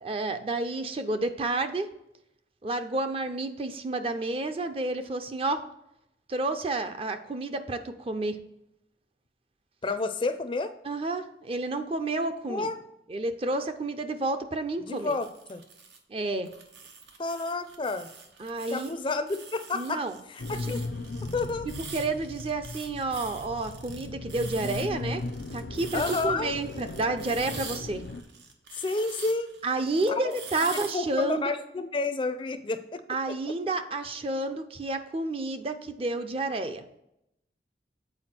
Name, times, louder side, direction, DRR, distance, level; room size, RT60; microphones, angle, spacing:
voice 1, 0.0-1.9 2.6-5.6 6.3-8.4 10.8-12.7 13.1-15.2 16.1-16.5 18.4-18.9 19.7-20.2 21.9-25.2 25.5-28.0 29.6-31.5 33.1-36.8, right 2 dB, 30° right, 8 dB, 0.5 m, -30 dB
voice 2, 9.8-10.7 12.5-12.8 14.8-15.6 17.2-18.1 18.7-20.8 21.3-21.7 25.9-26.5 28.7-29.5 30.1-30.3 30.6-33.0, left 3 dB, 30° left, 10 dB, 0.4 m, -30 dB
sound 1, 15.0-16.0 16.5-31.2, right 5 dB, 85° right, 1.0 m, -45 dB
sound 2, 20.4-28.2, left 2 dB, 85° left, 0.5 m, -37 dB
7.8 x 4.6 x 4.3 m, 0.82 s
head